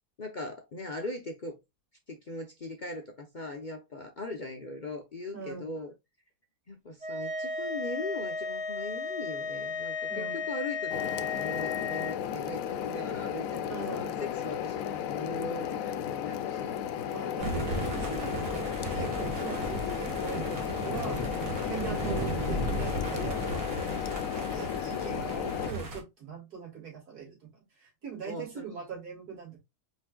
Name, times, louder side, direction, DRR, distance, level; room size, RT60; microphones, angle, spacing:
voice 1, 0.2-1.5 2.1-5.9 6.7-17.0 28.3-28.7, left 2 dB, 45° left, 0.6 m, -40 dB
voice 2, 5.3-5.7 10.1-10.5 13.7-14.2 17.1-29.6, right 6 dB, 85° right, 2.8 m, -42 dB
sound 1, 7.0-12.2, left 4 dB, 5° right, 0.7 m, -34 dB
sound 2, 10.9-25.7, left 9 dB, 70° left, 0.9 m, -34 dB
sound 3, 17.4-26.0, right 1 dB, 60° right, 1.9 m, -35 dB
4.6 x 4.5 x 2.3 m
omnidirectional pair, 1.6 m